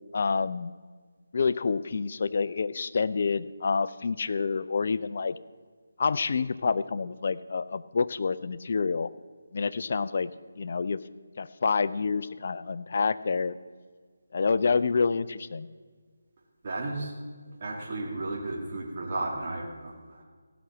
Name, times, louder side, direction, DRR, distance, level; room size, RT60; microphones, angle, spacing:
voice 1, 0.1-0.7 1.3-5.4 6.0-9.1 9.5-10.3 10.6-11.0 11.4-13.5 14.3-15.7, left 5 dB, 50° left, 15 dB, 0.5 m, -28 dB
voice 2, 16.6-17.1 17.6-20.2, right 2 dB, 40° right, -2 dB, 2.4 m, -34 dB
15.5 x 6.2 x 7.4 m, 1.5 s
figure-of-eight pair, 155°, 0 cm